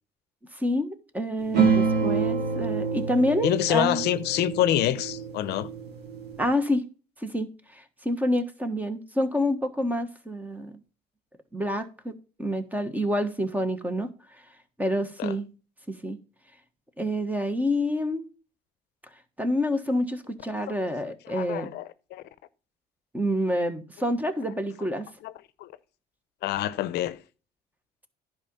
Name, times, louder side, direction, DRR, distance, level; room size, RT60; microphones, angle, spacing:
voice 1, 0.5-4.0 6.4-6.8 7.2-10.8 11.5-14.1 14.8-15.5 15.9-16.2 17.0-18.3 19.4-21.7 23.1-25.1, equal, 10° right, 1.3 m, -28 dB
sound 1, 1.5-6.5, right 5 dB, 75° right, 2.8 m, -27 dB
voice 2, 3.4-5.7 15.2-15.3 21.3-22.2 25.2-25.3 25.6-25.7 26.4-27.2, left 12 dB, 75° left, 0.6 m, -26 dB
11.0 x 4.9 x 5.4 m
cardioid pair, 110°, 17 cm